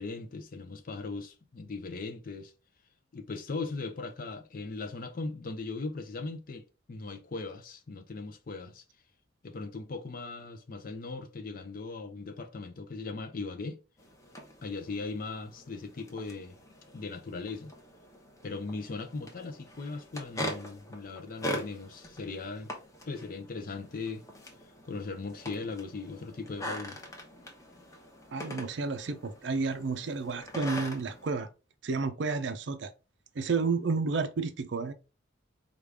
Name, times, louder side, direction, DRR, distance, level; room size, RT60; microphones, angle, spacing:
voice 1, 0.0-2.5 3.1-8.8 9.4-13.8 14.6-16.6 16.9-17.7 18.4-22.7 23.1-24.2 24.6-27.0, left 3 dB, 45° left, 0.5 m, -39 dB
sound 1, 14.0-31.3, equal, 15° left, 0.8 m, -43 dB
voice 2, 28.3-31.5 31.8-32.9 33.4-34.9, right 4 dB, 65° right, 0.5 m, -31 dB
4.9 x 2.4 x 3.3 m
head